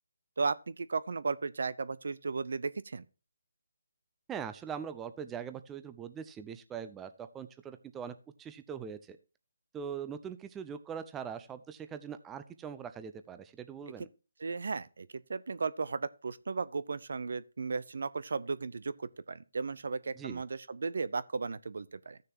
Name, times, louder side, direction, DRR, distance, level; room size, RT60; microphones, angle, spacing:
voice 1, 0.4-3.0 14.4-22.2, right 4 dB, 65° right, 0.6 m, -35 dB
voice 2, 4.3-9.2 9.7-14.1 20.2-20.4, right 7 dB, 10° right, 0.6 m, -42 dB
14.5 x 6.6 x 2.9 m
figure-of-eight pair, 155°, 0 cm